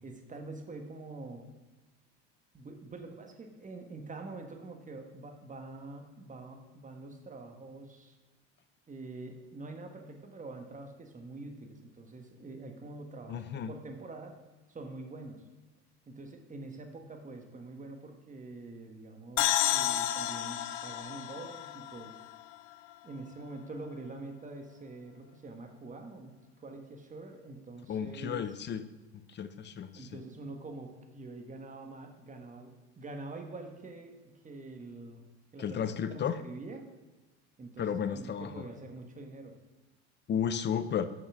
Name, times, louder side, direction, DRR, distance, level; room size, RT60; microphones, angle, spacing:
voice 1, 0.0-1.5 2.5-8.2 8.9-14.4 14.7-15.4 16.1-22.1 23.0-26.3 26.6-28.5 29.9-35.2 35.5-35.8 36.1-36.9 37.6-39.6, right 2 dB, 20° right, 4 dB, 1.5 m, -45 dB
voice 2, 13.3-13.7 27.9-28.8 29.3-30.1 35.6-36.4 37.8-38.6 40.3-41.1, left 8 dB, 30° left, 13 dB, 0.6 m, -33 dB
sound 1, 19.4-22.9, left 12 dB, 85° left, 0.6 m, -31 dB
6.4 x 6.0 x 6.2 m, 1.2 s
hypercardioid pair, 90°, 35 cm